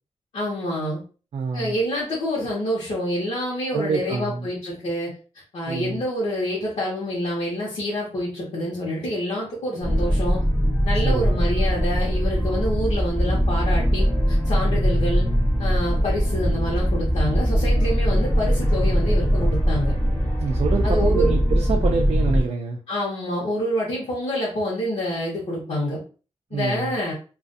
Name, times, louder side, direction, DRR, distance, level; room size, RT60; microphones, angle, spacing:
voice 1, 0.3-1.0 1.5-5.1 5.5-10.4 10.8-15.3 15.6-19.9 20.8-21.4 22.9-26.0 26.5-27.1, equal, 75° left, -6 dB, 0.9 m, -27 dB
voice 2, 1.3-1.7 3.7-4.5 5.7-6.0 11.0-11.3 20.4-22.8 26.5-27.0, right 5 dB, 65° right, 2 dB, 0.4 m, -27 dB
sound 1, 9.8-22.4, equal, 20° left, 0.7 m, -21 dB
2.4 x 2.4 x 2.5 m, 0.36 s
wide cardioid pair, 170°, 11 cm